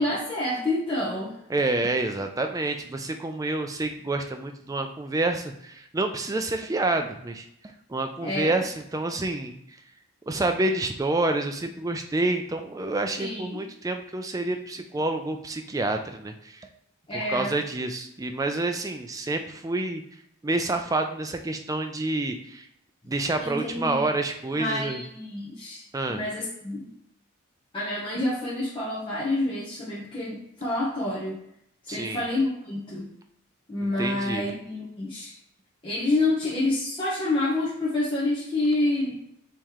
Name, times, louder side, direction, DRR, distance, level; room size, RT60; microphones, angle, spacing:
voice 1, 0.0-1.4 8.2-8.6 13.2-13.7 17.1-17.5 23.4-24.1 24.5-25.8 26.1-26.9 27.7-31.4 31.8-33.1 33.7-35.3 35.8-39.2, left 2 dB, 25° left, -8 dB, 0.8 m, -28 dB
voice 2, 1.5-9.6 10.3-16.7 17.1-20.0 20.4-22.6 23.1-25.0 25.9-26.2 31.9-32.2 33.8-34.5, right 2 dB, 15° right, 6 dB, 0.3 m, -28 dB
4.5 x 3.1 x 3.6 m, 0.75 s
head